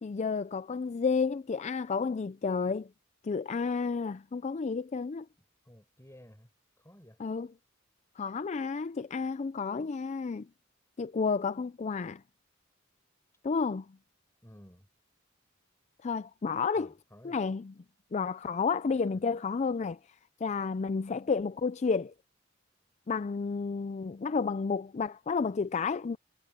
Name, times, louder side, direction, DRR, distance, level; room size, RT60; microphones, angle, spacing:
voice 1, 0.0-2.9 3.2-5.3 7.2-7.5 8.2-10.5 11.0-12.2 13.4-13.9 16.0-16.9 17.2-17.7 18.1-20.0 20.4-22.1 23.1-26.2, left 5 dB, 35° left, 0.4 m, -31 dB
voice 2, 5.6-6.5 6.8-7.2 14.4-14.9 16.7-17.4 19.1-19.2, equal, 15° left, 4.7 m, -54 dB
head